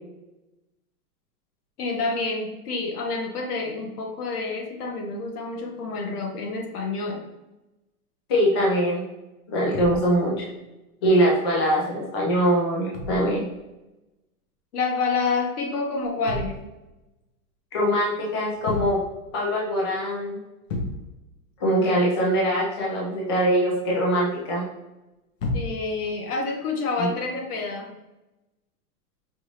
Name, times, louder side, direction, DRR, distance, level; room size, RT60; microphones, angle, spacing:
voice 1, 1.8-7.2 14.7-16.6 25.5-27.9, left 3 dB, 80° left, 1 dB, 1.3 m, -28 dB
voice 2, 8.3-9.0 9.5-10.5 11.0-13.5 17.7-19.0 19.3-20.4 21.6-24.6 27.0-27.1, equal, 20° left, -4 dB, 0.4 m, -22 dB
sound 1, 9.7-10.4 12.9-13.6 16.0-16.9 18.5-19.3 19.7-19.8 20.1-20.2 20.7-21.3 25.4-26.0 27.2-27.4, left 2 dB, 55° left, 1.0 m, -33 dB
5.2 x 2.5 x 3.1 m, 0.99 s
supercardioid pair, 165°, 45 cm